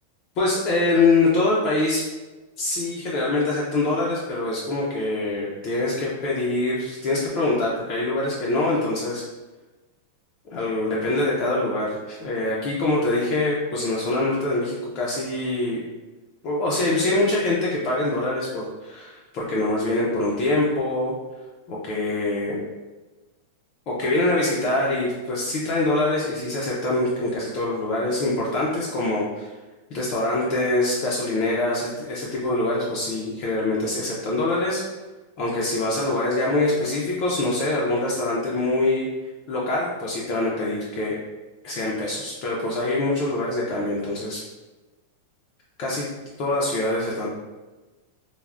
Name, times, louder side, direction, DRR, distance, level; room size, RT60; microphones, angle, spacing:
voice 1, 0.4-2.0 2.6-9.2 10.5-15.8 16.4-21.1 21.7-22.6 23.9-29.5 29.9-34.8 35.4-39.1 39.5-41.2 41.6-44.4 45.8-46.1 46.4-47.3, left 2 dB, 35° left, -5 dB, 0.4 m, -24 dB
3.3 x 2.0 x 2.4 m, 1.2 s
supercardioid pair, 170°, 0 cm